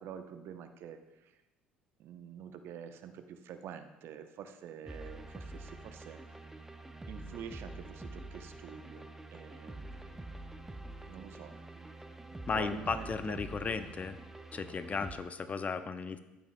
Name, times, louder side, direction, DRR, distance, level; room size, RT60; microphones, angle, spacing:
voice 1, 0.0-1.3 2.0-6.2 7.1-10.1 11.1-11.9 12.3-13.4, right 8 dB, 55° right, 8 dB, 0.7 m, -47 dB
sound 1, 4.9-15.2, right 2 dB, 10° right, 0.7 m, -46 dB
voice 2, 12.5-14.2 14.5-16.2, left 5 dB, 30° left, 11 dB, 0.6 m, -35 dB
12.0 x 8.9 x 2.2 m, 1.0 s
figure-of-eight pair, 60°, 5 cm